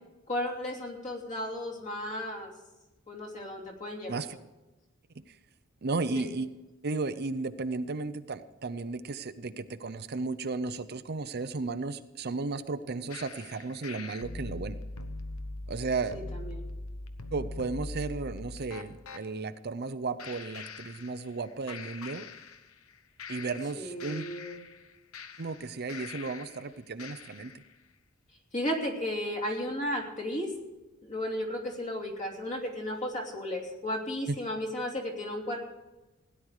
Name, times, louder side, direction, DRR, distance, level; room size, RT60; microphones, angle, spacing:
voice 1, 0.3-2.5 3.1-4.2 6.1-6.3 16.1-16.6 23.7-24.6 28.5-30.5 31.0-35.6, left 1 dB, 35° left, 1 dB, 3.0 m, -34 dB
voice 2, 5.8-6.5 6.8-14.8 15.7-16.2 17.3-22.3 23.3-24.3 25.4-27.5 34.3-34.4, right 3 dB, 50° right, 11 dB, 0.6 m, -34 dB
sound 1, 13.1-19.2 20.2-21.4 21.7-22.9 23.2-26.6 27.0-27.6, left 2 dB, 90° left, 1.1 m, -42 dB
17.0 x 11.0 x 4.9 m, 1.1 s
head